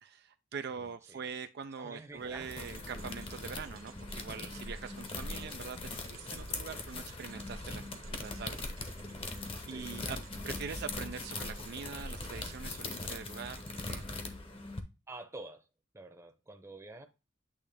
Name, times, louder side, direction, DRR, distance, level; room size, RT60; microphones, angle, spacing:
voice 1, 0.0-8.6 9.3-10.2 10.4-13.6 13.9-14.0, right 6 dB, 55° right, 0.4 m, -43 dB
voice 2, 0.7-1.3 1.8-2.9 5.4-5.6 9.7-10.1 10.5-10.8 15.1-15.7 15.9-17.1, right 2 dB, 15° right, 0.8 m, -49 dB
sound 1, 2.2-14.8, left 3 dB, 25° left, 0.9 m, -41 dB
sound 2, 2.6-14.2, right 1 dB, 90° right, 0.8 m, -50 dB
8.5 x 3.2 x 3.5 m
head